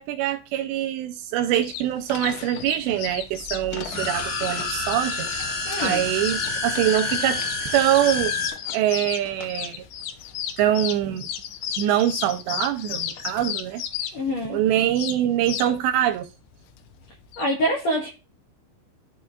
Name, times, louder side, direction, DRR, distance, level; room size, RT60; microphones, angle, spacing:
voice 1, 0.0-5.3 5.8-7.4 7.7-8.4 8.7-9.8 10.6-11.3 11.8-13.8 14.4-16.3, right 11 dB, 80° right, 2.6 m, -24 dB
sound 1, 1.5-17.5, left 10 dB, 80° left, 2.2 m, -34 dB
sound 2, 3.8-8.5, left 3 dB, 30° left, 3.6 m, -28 dB
voice 2, 5.7-6.0 14.1-14.6 17.4-18.1, equal, 60° left, 1.8 m, -25 dB
13.5 x 5.0 x 2.3 m
omnidirectional pair, 5.3 m